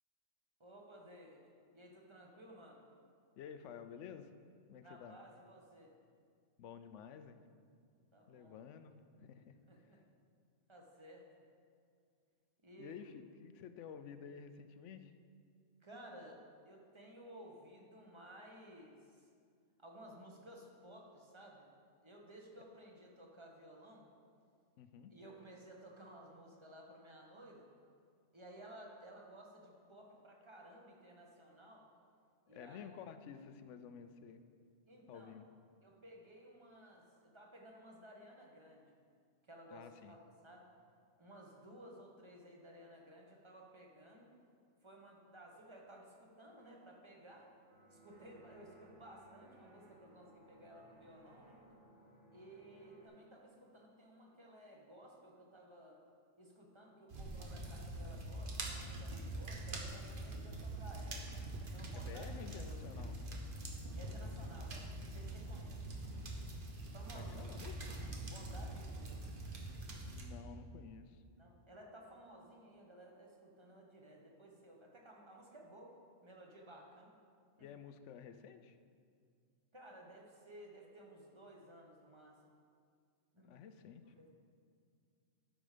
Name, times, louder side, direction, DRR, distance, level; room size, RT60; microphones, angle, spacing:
voice 1, 0.6-2.8 4.8-5.9 8.0-8.6 9.7-10.0 10.7-11.3 12.6-12.9 15.8-16.4 16.7-19.3 19.8-21.7 22.0-24.1 25.1-27.7 28.3-31.9 32.5-32.8 34.9-35.3 35.8-39.0 39.4-40.2 40.4-40.7 41.2-44.3 44.8-47.5 47.9-51.6 52.3-56.0 56.4-61.3 61.7-62.3 62.6-62.8 63.9-65.8 66.9-67.5 68.3-69.2 71.4-75.9 76.2-77.1 77.6-77.7 79.7-82.5 83.3-83.7 84.2-84.3, right 1 dB, 25° right, -1 dB, 1.1 m, -56 dB
voice 2, 3.4-4.3 4.7-5.2 6.6-7.4 8.3-8.9 9.2-9.6 9.9-10.0 12.8-15.1 24.8-25.1 32.5-34.4 35.1-35.4 39.7-40.2 61.9-63.2 67.1-67.8 70.1-71.2 77.6-78.8 83.4-84.0, left 7 dB, 70° left, 10 dB, 0.9 m, -52 dB
sound 1, 47.7-53.1, right 1 dB, 70° right, 1.6 m, -63 dB
sound 2, 57.1-70.3, right 1 dB, 45° right, 1.2 m, -44 dB
12.5 x 5.2 x 5.0 m, 2.2 s
omnidirectional pair, 1.3 m